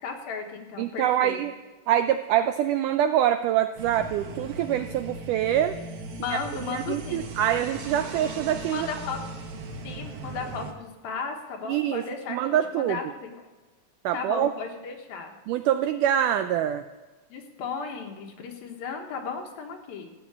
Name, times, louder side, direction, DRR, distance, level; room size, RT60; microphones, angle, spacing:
voice 1, 0.0-1.4 6.0-7.2 8.7-9.2 9.8-13.5 14.1-15.3 17.3-20.1, left 5 dB, 80° left, 3 dB, 3.3 m, -35 dB
voice 2, 0.8-1.5 1.9-5.8 6.3-6.4 6.7-8.9 11.7-12.0 12.3-13.0 14.1-14.5 15.5-16.9, right 11 dB, 85° right, 9 dB, 1.8 m, -25 dB
sound 1, 3.8-10.7, right 2 dB, 70° right, 1.3 m, -38 dB
14.0 x 7.9 x 8.4 m, 1.2 s
omnidirectional pair, 4.2 m